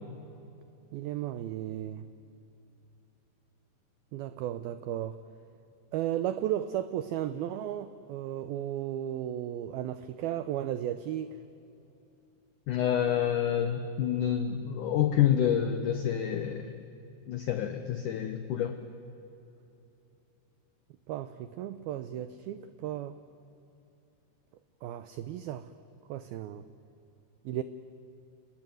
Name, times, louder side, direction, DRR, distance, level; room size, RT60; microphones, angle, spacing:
voice 1, 0.9-2.1 4.1-5.2 5.9-11.4 21.1-23.2 24.8-25.7 26.1-26.7 27.5-27.6, right 11 dB, 85° right, 12 dB, 2.1 m, -34 dB
voice 2, 12.7-16.7 17.3-18.8, left 9 dB, 90° left, 8 dB, 1.8 m, -28 dB
29.5 x 20.0 x 9.3 m, 2.9 s
omnidirectional pair, 5.3 m